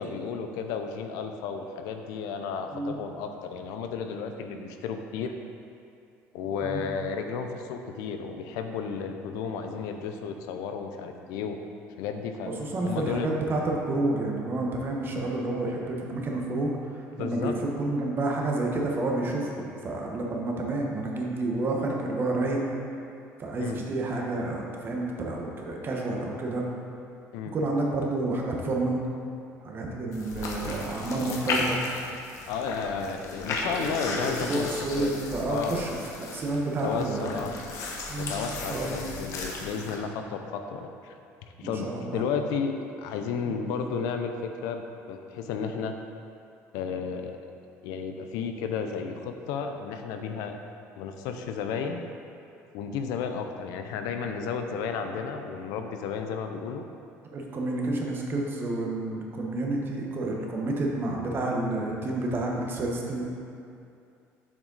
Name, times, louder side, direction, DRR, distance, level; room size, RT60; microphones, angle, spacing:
voice 1, 0.0-5.3 6.3-11.6 12.0-13.3 17.2-17.5 23.6-23.8 27.3-27.5 32.5-34.7 35.0-35.2 35.5-35.8 36.8-37.6 38.2-41.2 41.6-42.7 43.0-44.8 45.1-45.9 46.7-47.4 47.8-50.6 51.0-52.0 52.7-56.8, left 6 dB, 85° left, 6 dB, 0.5 m, -33 dB
voice 2, 12.6-22.7 23.4-26.7 27.5-29.0 29.6-31.8 33.6-36.0 36.3-37.3 38.1-38.3 38.6-39.0 39.6-39.7 41.6-42.2 43.5-43.6 57.3-63.3, right 2 dB, 40° right, -1 dB, 1.1 m, -30 dB
sound 1, 30.1-40.0, left 3 dB, 60° left, 1.0 m, -35 dB
7.3 x 5.0 x 4.0 m, 2.5 s
cardioid pair, 110°, 6 cm